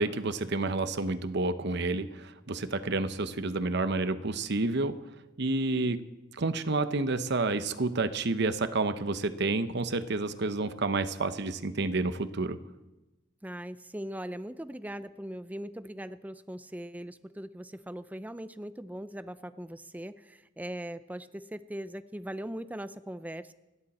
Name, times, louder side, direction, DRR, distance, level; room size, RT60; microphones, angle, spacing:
voice 1, 0.0-5.0 5.4-6.0 6.3-12.6, right 3 dB, 60° right, 11 dB, 0.9 m, -29 dB
voice 2, 13.4-23.5, right 1 dB, 10° right, 13 dB, 0.5 m, -40 dB
29.5 x 10.5 x 4.3 m, 1.0 s
head